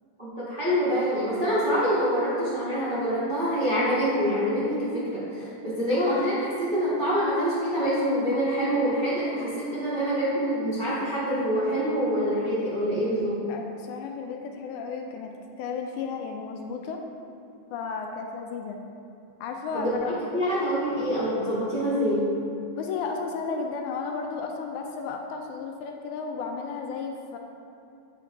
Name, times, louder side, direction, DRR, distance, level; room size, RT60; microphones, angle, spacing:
voice 1, 0.2-13.4 19.7-22.3, equal, 50° right, -11 dB, 0.5 m, -26 dB
voice 2, 13.5-15.3 15.6-17.0 17.7-18.8 19.4-20.1 22.8-27.4, left 5 dB, 80° left, 3 dB, 1.9 m, -33 dB
8.2 x 4.6 x 3.5 m, 2.7 s
omnidirectional pair, 3.6 m